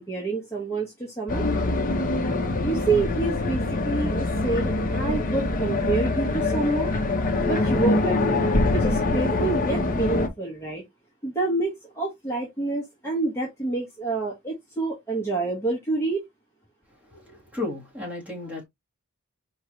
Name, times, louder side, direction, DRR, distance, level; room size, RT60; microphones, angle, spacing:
voice 1, 0.0-1.4 2.6-6.9 7.4-8.4 8.7-10.8 11.2-16.2, right 3 dB, 10° left, 1.3 m, -28 dB
sound 1, 1.3-10.3, left 2 dB, 40° left, 0.8 m, -24 dB
voice 2, 17.1-18.6, left 2 dB, 5° right, 2.3 m, -34 dB
4.7 x 3.2 x 3.1 m
head